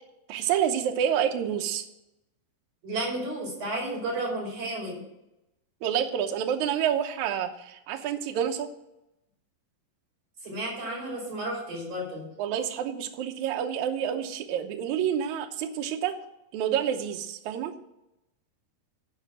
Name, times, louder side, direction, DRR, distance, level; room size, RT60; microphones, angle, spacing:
voice 1, 0.3-1.8 5.8-8.7 12.4-16.2 16.5-17.7, right 9 dB, 70° right, 5 dB, 2.0 m, -28 dB
voice 2, 2.8-5.0 10.4-12.3, right 1 dB, 45° right, -2 dB, 6.1 m, -32 dB
12.0 x 5.1 x 7.6 m, 0.88 s
omnidirectional pair, 4.1 m